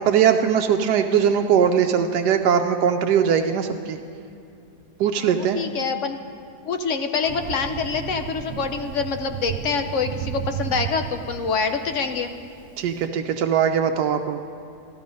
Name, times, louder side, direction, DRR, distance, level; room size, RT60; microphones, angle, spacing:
voice 1, 0.0-4.0 5.0-5.6 12.8-14.4, right 8 dB, 85° right, 5 dB, 1.2 m, -20 dB
voice 2, 5.2-6.2 6.6-12.3, left 5 dB, 60° left, 7 dB, 0.9 m, -26 dB
Thunder, 7.2-12.9, right 8 dB, 70° right, 0.8 m, -34 dB
13.5 x 12.5 x 5.2 m, 2.5 s
omnidirectional pair, 1.7 m